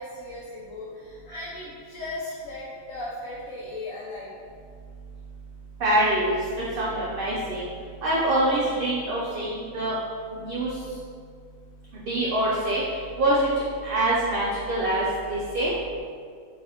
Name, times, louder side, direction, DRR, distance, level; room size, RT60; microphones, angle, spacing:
voice 1, 0.0-4.4, left 2 dB, 80° left, -7 dB, 1.1 m, -37 dB
voice 2, 5.8-6.4 6.8-7.6 8.0-9.9 10.3-10.7 12.1-12.8 13.2-13.5 13.8-15.0 15.3-15.7, right 1 dB, 60° right, -6 dB, 0.6 m, -24 dB
3.1 x 2.4 x 4.1 m, 2.1 s
omnidirectional pair, 1.4 m